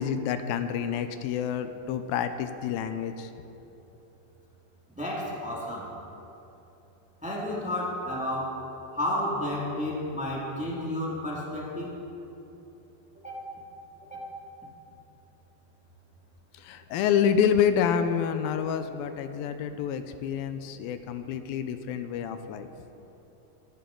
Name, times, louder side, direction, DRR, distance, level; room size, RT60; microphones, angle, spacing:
voice 1, 0.0-3.3 16.5-22.7, left 8 dB, 80° left, 9 dB, 2.3 m, -28 dB
voice 2, 4.9-5.9 7.2-8.6 8.9-12.0 13.2-13.5 14.1-14.3, left 1 dB, 5° right, -4 dB, 0.7 m, -32 dB
20.5 x 13.0 x 3.8 m, 3.0 s
omnidirectional pair, 4.4 m